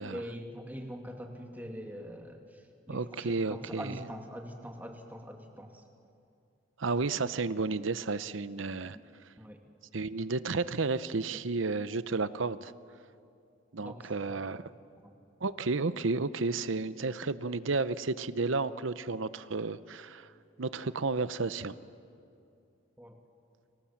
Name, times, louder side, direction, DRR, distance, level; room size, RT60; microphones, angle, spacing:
voice 1, 0.1-5.8 6.9-7.1 9.4-9.6 13.8-14.4 15.0-15.1 23.0-23.2, equal, 10° right, 3 dB, 2.1 m, -43 dB
voice 2, 2.9-4.0 6.8-9.0 9.9-12.7 13.7-14.6 15.4-20.3 20.6-21.7, right 3 dB, 75° right, 15 dB, 0.8 m, -32 dB
30.0 x 26.5 x 7.3 m, 2.5 s
head